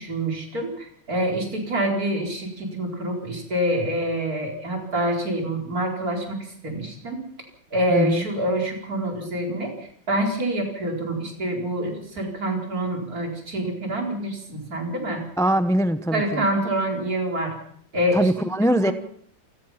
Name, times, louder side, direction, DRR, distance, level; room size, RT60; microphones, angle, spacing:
voice 1, 0.0-7.3 7.7-15.2 16.1-17.6 17.9-18.9, right 1 dB, 50° right, 2 dB, 5.0 m, -26 dB
voice 2, 7.9-8.2 15.4-16.4 18.1-18.9, equal, 5° left, 11 dB, 0.3 m, -22 dB
28.5 x 17.0 x 5.8 m, 0.62 s
omnidirectional pair, 2.1 m